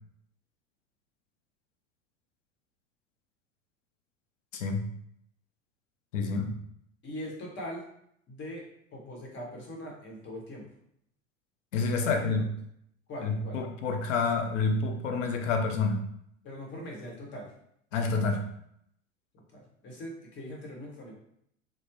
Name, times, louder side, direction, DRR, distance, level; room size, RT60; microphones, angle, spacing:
voice 1, 4.5-4.9 6.1-6.5 11.7-12.4 13.2-16.0 17.9-18.4, left 4 dB, 65° left, 4 dB, 0.6 m, -28 dB
voice 2, 7.0-7.8 8.3-8.6 8.9-10.6 11.9-12.5 13.1-13.6 16.4-17.5 19.3-21.1, left 1 dB, 30° left, -2 dB, 1.0 m, -41 dB
3.1 x 2.0 x 3.0 m, 0.71 s
figure-of-eight pair, 85°, 40 cm